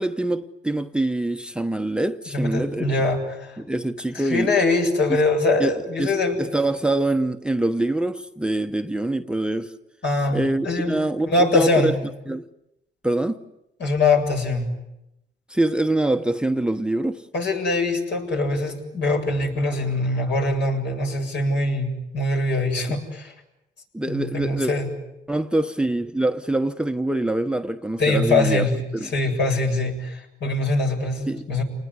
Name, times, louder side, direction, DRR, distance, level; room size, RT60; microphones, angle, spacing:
voice 1, 0.0-2.9 3.6-4.5 5.1-5.2 5.6-9.7 10.3-12.0 12.3-12.5 13.0-13.4 15.5-17.3 23.9-24.7 25.3-28.7 28.9-29.1 31.3-31.6, right 1 dB, 5° right, 1.0 m, -24 dB
voice 2, 2.3-3.6 4.1-6.4 10.0-11.0 11.3-12.0 13.8-14.8 17.3-23.3 24.1-24.9 28.0-28.8 29.0-31.6, left 2 dB, 65° left, 7.5 m, -23 dB
29.5 x 20.0 x 9.7 m
cardioid pair, 90°, 20 cm